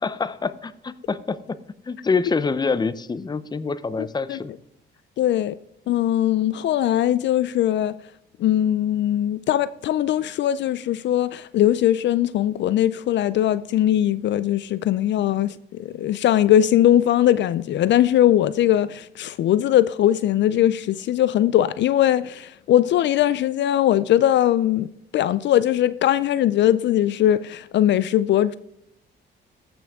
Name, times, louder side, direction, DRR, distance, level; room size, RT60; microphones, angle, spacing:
voice 1, 0.0-1.6 1.9-4.5, left 4 dB, 20° left, 0.6 m, -26 dB
voice 2, 4.0-4.4 5.2-5.6 5.9-7.9 8.4-24.9 25.1-28.6, left 12 dB, 65° left, 0.4 m, -20 dB
15.0 x 6.1 x 3.6 m
cardioid pair, 90°, 20 cm